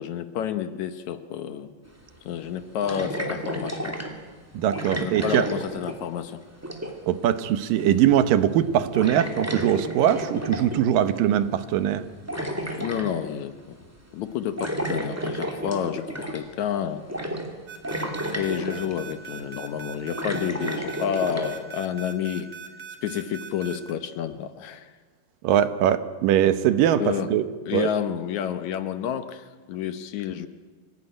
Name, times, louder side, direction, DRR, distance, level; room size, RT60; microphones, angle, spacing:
voice 1, 0.0-1.8 2.3-4.0 5.0-6.4 12.8-13.8 14.1-17.1 18.3-22.5 23.0-24.9 27.0-27.4 27.7-30.5, left 9 dB, 70° left, 11 dB, 2.0 m, -30 dB
sound 1, 1.8-1.9 2.8-4.2 4.7-6.2 6.5-7.1 7.8-8.2 8.4-8.6 8.9-10.8 11.9-13.2 14.6-16.6 17.1-17.5 17.8-18.9 19.7-21.6, right 1 dB, 5° right, 1.8 m, -31 dB
voice 2, 4.5-5.5 7.1-12.0 25.4-27.5 27.7-27.9, right 10 dB, 80° right, 12 dB, 2.8 m, -21 dB
sound 2, 17.7-23.9, right 7 dB, 60° right, 3.8 m, -40 dB
25.5 x 17.0 x 9.9 m, 1.5 s
omnidirectional pair, 3.9 m